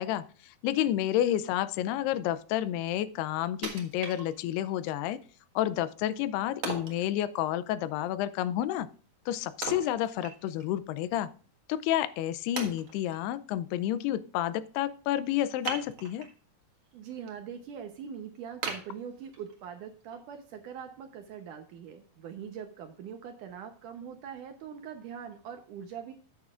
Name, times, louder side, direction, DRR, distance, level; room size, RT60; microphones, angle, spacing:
voice 1, 0.0-5.2 5.6-8.9 9.3-11.3 11.7-16.3, left 12 dB, 85° left, 15 dB, 2.6 m, -30 dB
Wood, 3.6-4.7 5.2-5.3 6.6-7.0 9.6-10.7 11.1-11.2 11.8-11.9 12.6-13.2 15.6-16.4 16.9-17.3 17.7-17.8 18.6-19.6 20.1-20.2, right 5 dB, 50° right, 1.6 m, -38 dB
voice 2, 16.9-26.1, right 8 dB, 75° right, 6 dB, 2.0 m, -42 dB
13.0 x 9.5 x 2.4 m, 0.41 s
omnidirectional pair, 4.6 m